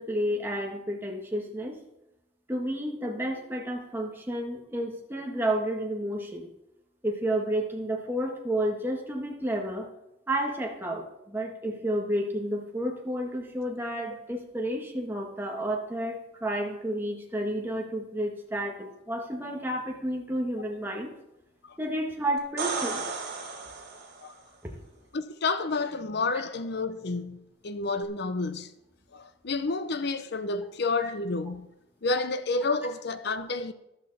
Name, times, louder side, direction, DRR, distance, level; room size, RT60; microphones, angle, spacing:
voice 1, 0.0-1.8 2.5-6.5 7.0-9.9 10.3-21.1 21.8-23.1 31.0-31.1, right 1 dB, 10° right, 1.7 m, -31 dB
sound 1, 22.4-24.3 28.0-28.1, right 4 dB, 50° right, 3.0 m, -34 dB
voice 2, 25.1-28.7 29.1-31.7 32.0-33.7, left 3 dB, 55° left, 0.7 m, -30 dB
13.5 x 12.5 x 4.2 m
head